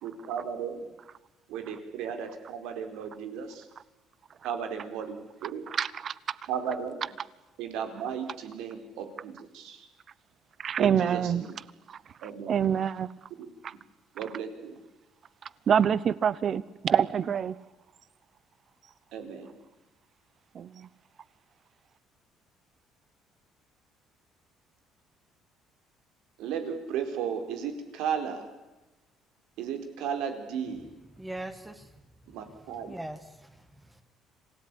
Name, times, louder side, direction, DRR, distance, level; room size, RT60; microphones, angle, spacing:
voice 1, 0.0-0.9 1.5-3.7 4.4-5.6 6.5-7.0 7.6-9.9 10.8-11.5 12.2-12.6 14.1-14.8 19.1-19.6 26.4-28.5 29.6-30.9 32.3-32.9, right 7 dB, 85° right, 4.5 m, -35 dB
voice 2, 5.7-6.1 10.6-11.4 12.5-13.1 13.6-13.7 15.7-17.5 20.5-20.9, right 8 dB, 40° right, 1.0 m, -26 dB
voice 3, 31.2-31.9 32.5-34.0, right 1 dB, 10° right, 1.9 m, -42 dB
27.0 x 17.5 x 9.9 m
cardioid pair, 130°, 0 cm